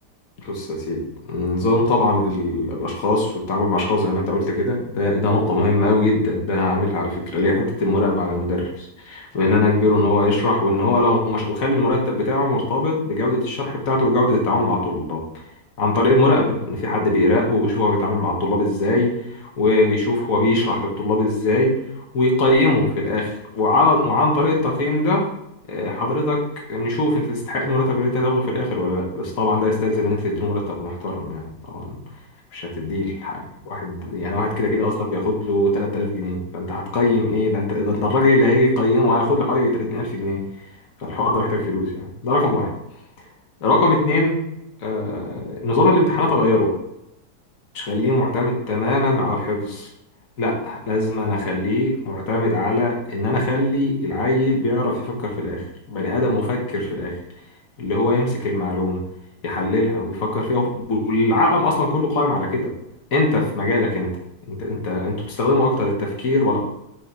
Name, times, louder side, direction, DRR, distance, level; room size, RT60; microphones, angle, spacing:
voice 1, 0.4-1.0 1.3-15.2 15.8-21.7 22.1-25.2 25.7-26.4 26.7-32.0 32.5-40.4 41.1-42.7 43.6-44.4 44.8-46.7 47.7-49.9 50.4-57.2 57.8-59.0 59.4-62.7 63.1-64.1 64.5-66.6, left 2 dB, 50° left, -1 dB, 1.7 m, -21 dB
6.8 x 3.7 x 4.7 m, 0.83 s
omnidirectional pair, 1.9 m